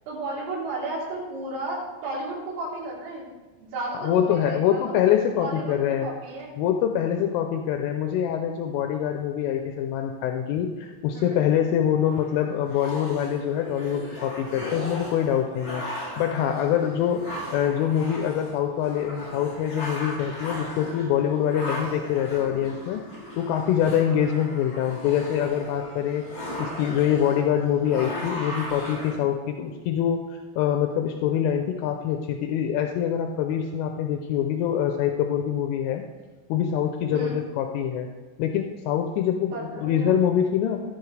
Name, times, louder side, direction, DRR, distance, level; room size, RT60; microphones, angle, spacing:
voice 1, 0.1-3.3 3.6-5.0 5.4-6.5 11.1-11.5 37.1-37.4 39.5-40.2, right 2 dB, 80° right, -9 dB, 6.5 m, -34 dB
voice 2, 3.9-6.1 6.6-17.2 17.5-23.0 23.4-26.3 26.6-36.0 36.5-38.1 38.4-40.8, left 9 dB, 80° left, 4 dB, 3.1 m, -25 dB
sound 1, 12.0-29.2, left 1 dB, 20° left, 4.1 m, -37 dB
15.5 x 10.5 x 3.3 m, 1.3 s
omnidirectional pair, 5.9 m